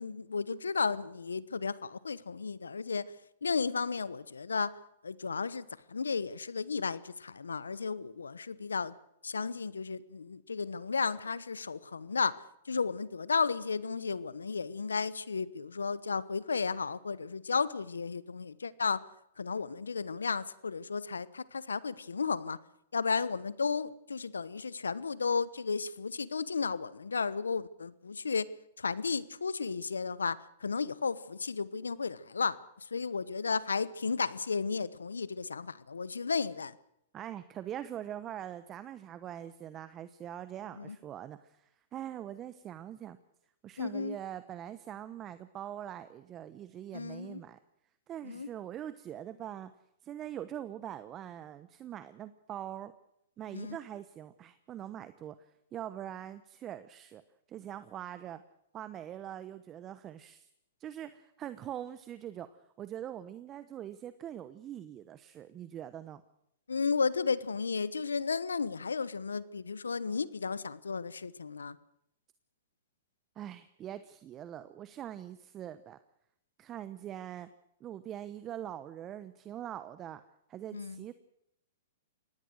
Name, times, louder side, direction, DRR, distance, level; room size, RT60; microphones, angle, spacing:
voice 1, 0.0-3.1 3.4-4.7 5.0-8.9 9.2-19.0 19.4-22.6 22.9-28.5 28.8-32.6 32.9-36.8 40.8-41.0 43.8-44.2 46.9-47.4 48.2-48.5 53.5-53.8 66.7-71.8 80.7-81.0, left 5 dB, 90° left, 19 dB, 1.0 m, -33 dB
voice 2, 37.1-43.2 43.6-47.6 48.1-49.7 50.0-52.9 53.4-57.2 57.5-58.4 58.7-60.5 60.8-62.5 62.8-66.2 73.4-76.0 76.6-77.5 77.8-80.2 80.5-81.1, right 11 dB, 30° right, 13 dB, 1.0 m, -43 dB
24.5 x 18.5 x 6.4 m, 0.78 s
hypercardioid pair, 120°, 0 cm